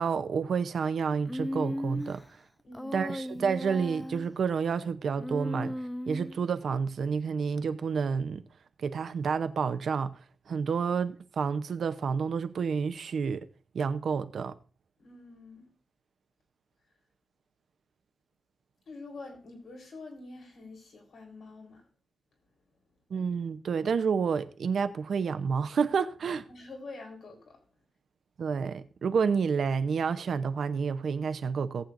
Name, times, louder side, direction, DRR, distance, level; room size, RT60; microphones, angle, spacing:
voice 1, 0.0-2.2 2.9-5.7 6.1-8.4 8.8-10.1 10.5-13.4 13.7-14.5 23.1-26.5 28.4-31.8, right 6 dB, 70° right, 0.8 m, -29 dB
Human voice, 1.3-2.2 2.7-4.3 5.2-6.4, equal, 5° left, 0.4 m, -36 dB
voice 2, 2.6-3.1 15.0-15.7 18.9-21.9 26.5-27.6, left 3 dB, 80° left, 3.8 m, -46 dB
18.0 x 8.6 x 2.6 m
wide cardioid pair, 140°, 0 cm